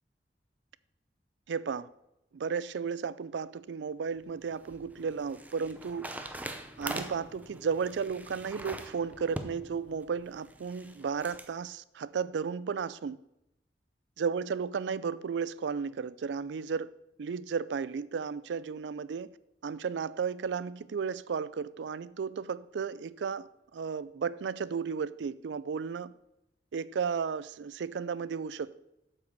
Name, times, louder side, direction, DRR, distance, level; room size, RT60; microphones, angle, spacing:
voice 1, 1.5-1.9 2.3-6.1 6.8-13.2 14.2-16.9 17.2-19.3 19.6-26.1 26.7-28.8, right 6 dB, 80° right, 0.4 m, -34 dB
sound 1, 4.2-11.5, right 1 dB, 10° right, 0.6 m, -43 dB
8.1 x 5.9 x 6.6 m
head